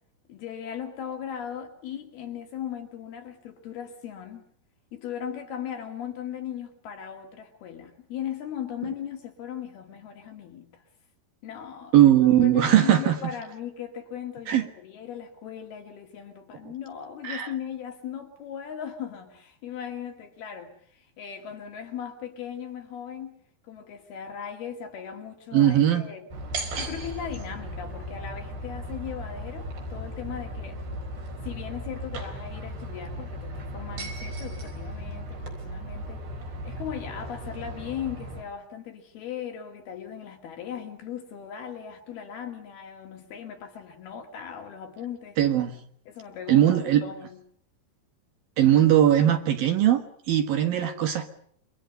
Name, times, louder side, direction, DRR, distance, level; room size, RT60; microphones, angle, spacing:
voice 1, 0.3-4.5 4.9-10.8 11.4-23.4 23.6-26.3 26.8-30.8 31.4-36.2 36.6-45.4 46.1-47.4, left 9 dB, 75° left, 4.2 m, -38 dB
voice 2, 11.9-13.1 14.5-14.7 17.2-17.5 25.5-26.0 45.4-45.7 46.5-47.0 48.6-51.3, right 11 dB, 65° right, 3.2 m, -20 dB
sound 1, 26.3-38.4, right 1 dB, 90° right, 6.8 m, -36 dB
28.0 x 24.5 x 5.4 m
omnidirectional pair, 4.5 m